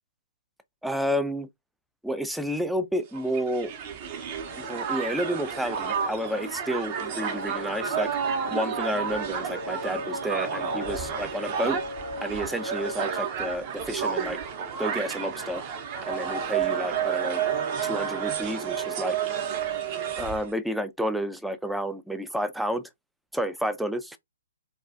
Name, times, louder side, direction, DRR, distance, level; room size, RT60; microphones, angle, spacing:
voice 1, 0.8-1.5 2.0-3.7 4.6-11.8 12.2-14.4 14.8-15.6 16.0-17.4 17.8-19.2 20.2-22.8 23.3-24.2, equal, ahead, 0.3 m, -30 dB
Crowd, 3.1-20.5, right 7 dB, 35° right, 0.6 m, -31 dB
sound 1, 4.3-13.2, left 2 dB, 90° right, 0.4 m, -39 dB
2.3 x 2.1 x 2.5 m
figure-of-eight pair, 125°, 0 cm